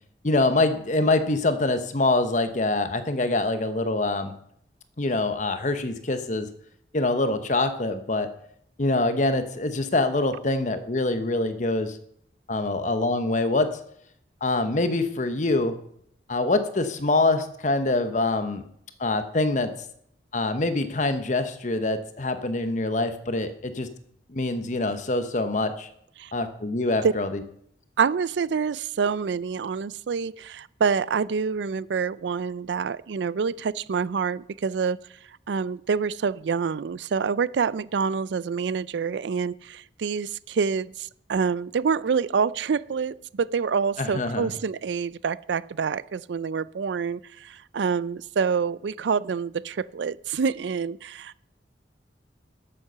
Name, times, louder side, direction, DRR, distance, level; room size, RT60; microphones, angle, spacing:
voice 1, 0.2-4.3 5.0-6.5 6.9-8.3 8.8-12.0 12.5-13.7 14.4-15.7 16.3-18.6 19.0-19.7 20.3-23.9 24.3-25.9 26.3-27.4 44.0-44.5, left 2 dB, 40° left, 9 dB, 0.9 m, -25 dB
voice 2, 28.0-35.0 35.5-51.4, right 6 dB, 75° right, 19 dB, 0.4 m, -27 dB
12.0 x 7.7 x 6.7 m, 0.69 s
head